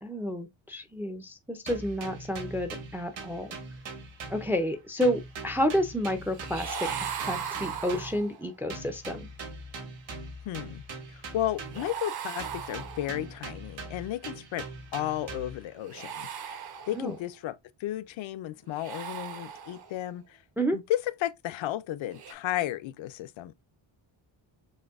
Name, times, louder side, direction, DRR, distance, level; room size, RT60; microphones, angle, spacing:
voice 1, 0.0-3.6 4.3-9.3 16.9-17.2 20.6-20.8, equal, 5° right, 0.3 m, -30 dB
sound 1, 1.7-4.7 5.0-8.3 8.7-12.0 12.4-15.7, right 3 dB, 70° right, 1.6 m, -42 dB
sound 2, 6.3-8.5 11.7-13.4 15.8-17.3 18.7-20.0 22.1-22.3, right 8 dB, 50° right, 0.8 m, -38 dB
voice 2, 10.5-10.8 11.1-14.7 14.9-16.3 16.9-20.4 20.7-23.6, left 13 dB, 75° left, 0.5 m, -33 dB
6.4 x 2.6 x 2.3 m
wide cardioid pair, 180°, 47 cm